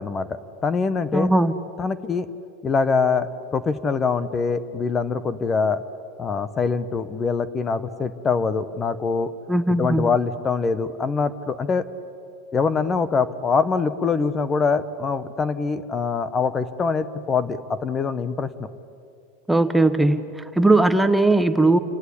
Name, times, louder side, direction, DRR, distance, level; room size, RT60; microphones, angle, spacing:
voice 1, 0.0-1.3 1.8-2.3 2.6-5.8 6.2-9.3 9.8-11.8 12.5-18.7, left 5 dB, 25° left, 14 dB, 1.0 m, -24 dB
voice 2, 1.1-1.5 9.5-10.1 19.5-21.8, right 2 dB, 5° right, 9 dB, 1.0 m, -18 dB
29.0 x 16.5 x 10.0 m, 2.5 s
supercardioid pair, 125°, 0 cm